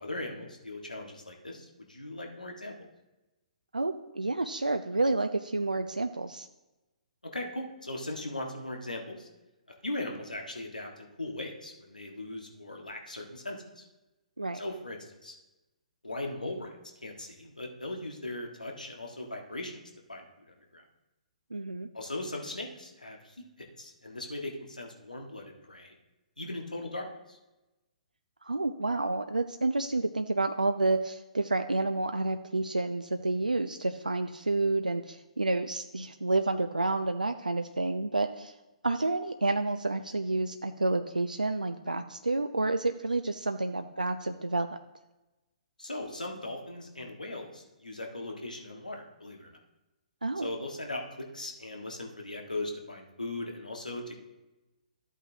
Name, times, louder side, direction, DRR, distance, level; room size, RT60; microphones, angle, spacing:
voice 1, 0.0-2.7 7.3-9.3 9.8-13.8 14.5-15.4 16.0-16.7 17.0-19.8 20.1-20.8 21.9-25.9 26.4-27.4 45.8-49.5 50.4-54.2, left 2 dB, 85° left, 1 dB, 1.7 m, -39 dB
voice 2, 3.7-6.5 14.4-14.6 21.5-21.9 28.4-38.5 38.8-44.7 50.2-50.5, right 2 dB, 85° right, 7 dB, 0.5 m, -29 dB
13.5 x 8.2 x 2.9 m, 1.0 s
figure-of-eight pair, 125°, 4 cm